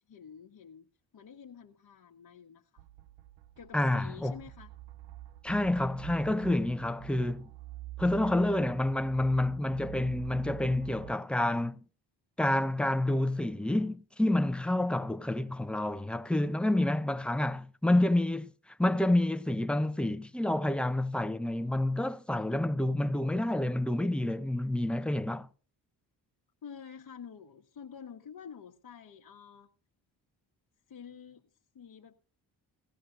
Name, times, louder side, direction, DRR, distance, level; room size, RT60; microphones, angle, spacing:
voice 1, 0.1-2.8 3.6-4.7 26.6-29.7 30.9-31.5 31.7-32.2, left 7 dB, 55° left, 1.2 m, -49 dB
sound 1, 2.8-11.2, right 15 dB, 75° right, 0.6 m, -47 dB
voice 2, 3.7-4.3 5.4-7.5 8.0-11.8 12.4-18.5 18.8-25.5, left 1 dB, ahead, 0.7 m, -28 dB
18.5 x 14.5 x 2.6 m
supercardioid pair, 60°, 44 cm